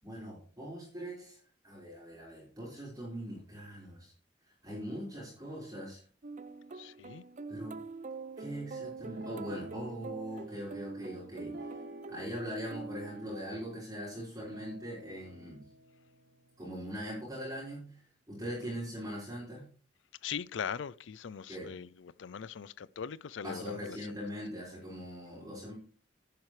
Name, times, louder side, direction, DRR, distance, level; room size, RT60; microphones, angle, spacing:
voice 1, 0.0-1.4 1.6-4.1 4.6-6.0 7.5-7.8 8.4-11.5 12.1-15.6 16.6-19.7 21.5-21.7 23.4-25.7, equal, 20° right, 4.8 m, -41 dB
sound 1, 6.2-13.7, right 4 dB, 40° right, 0.6 m, -44 dB
voice 2, 6.7-7.2 18.6-18.7 20.2-24.0, left 7 dB, 80° left, 0.5 m, -40 dB
Guitar, 9.0-10.2 11.5-12.4 12.7-13.8 14.4-17.9, right 1 dB, 65° right, 6.1 m, -51 dB
10.5 x 10.5 x 3.2 m
head